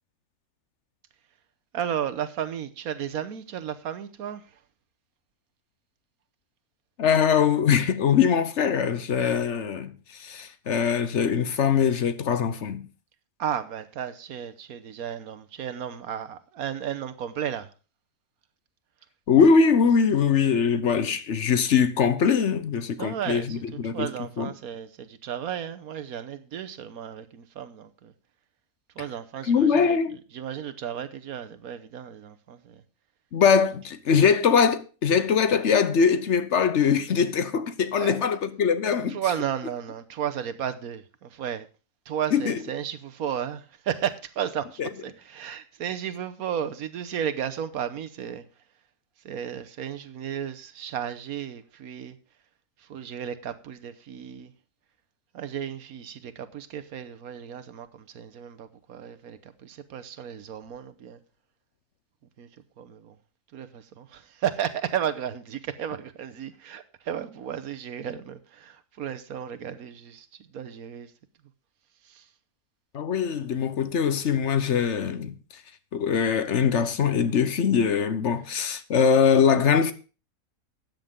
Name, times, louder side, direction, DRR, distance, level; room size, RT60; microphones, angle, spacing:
voice 1, 1.7-4.6 13.4-17.7 23.0-28.1 29.0-30.0 30.3-32.8 38.0-38.4 39.1-41.7 42.1-48.4 49.2-52.2 52.8-54.5 55.3-61.2 62.4-62.5 62.8-63.2 63.5-71.1 72.0-72.3, right 9 dB, 90° right, 1.4 m, -34 dB
voice 2, 7.0-12.9 19.3-24.1 24.4-24.5 29.5-30.2 33.3-39.2 42.3-42.6 44.8-44.9 72.9-75.3 75.9-79.9, left 6 dB, 60° left, 1.1 m, -22 dB
13.0 x 9.0 x 3.7 m
omnidirectional pair, 1.5 m